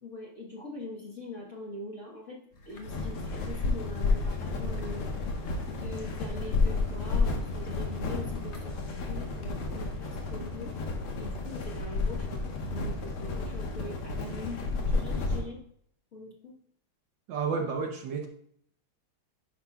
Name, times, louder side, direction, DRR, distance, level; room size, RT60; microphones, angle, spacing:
voice 1, 0.0-2.4 2.7-5.0 5.7-10.8 11.2-12.4 12.7-15.6 16.1-16.5, left 2 dB, 40° left, -3 dB, 1.3 m, -42 dB
sound 1, 2.5-9.7, left 1 dB, 65° left, 0.7 m, -49 dB
sound 2, 2.8-15.4, left 3 dB, 90° left, 2.1 m, -31 dB
voice 2, 17.3-18.3, right 5 dB, 70° right, 3 dB, 1.3 m, -31 dB
9.8 x 5.9 x 2.3 m, 0.66 s
omnidirectional pair, 2.4 m